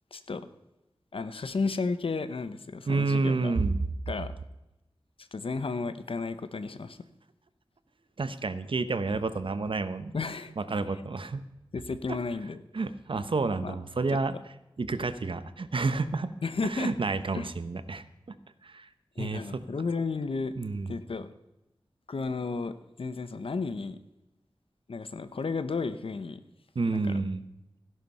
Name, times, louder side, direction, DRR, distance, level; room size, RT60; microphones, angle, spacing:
voice 1, 0.1-0.5 1.1-3.5 4.1-4.3 5.2-7.0 10.1-10.5 11.7-12.6 13.6-13.7 16.4-16.9 17.3-17.5 19.2-20.6 20.9-21.3 22.1-24.0 24.9-26.4 26.9-27.2, left 4 dB, 85° left, 12 dB, 0.9 m, -33 dB
voice 2, 2.9-3.8 8.2-10.2 10.6-11.4 12.1-12.2 12.7-14.3 14.8-16.3 16.6-18.4 18.6-18.9 19.2-19.6 20.6-20.9 26.7-27.4, right 3 dB, 70° right, 12 dB, 1.0 m, -30 dB
16.0 x 11.0 x 5.5 m, 0.93 s
wide cardioid pair, 75°, 9 cm